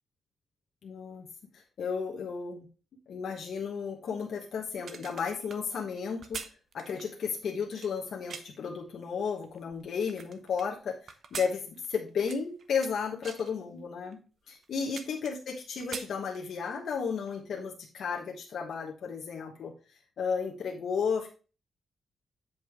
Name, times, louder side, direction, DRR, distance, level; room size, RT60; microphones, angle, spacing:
voice 1, 0.8-1.3 1.5-2.7 3.1-6.4 6.7-14.2 14.5-19.7 20.2-21.3, left 6 dB, 75° left, -1 dB, 1.1 m, -33 dB
sound 1, 4.7-8.7 9.3-10.7 11.1-12.9 13.2-13.5 14.1-14.2 14.5-15.5 15.8-16.8 17.2-17.3, right 5 dB, 60° right, 0.7 m, -44 dB
8.1 x 5.2 x 3.6 m, 0.34 s
wide cardioid pair, 125°, 0 cm